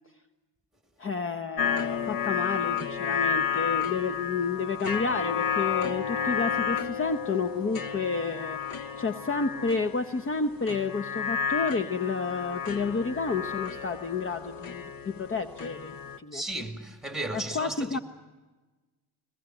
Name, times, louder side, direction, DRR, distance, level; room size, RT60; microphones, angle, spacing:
voice 1, 1.0-8.6 9.0-16.4 17.3-18.0, left 4 dB, 30° left, 1.0 m, -30 dB
sound 1, 1.6-16.2, left 7 dB, 50° left, 1.2 m, -32 dB
voice 2, 16.3-18.0, right 1 dB, ahead, 2.3 m, -34 dB
22.5 x 21.5 x 9.0 m
cardioid pair, 90°, 44 cm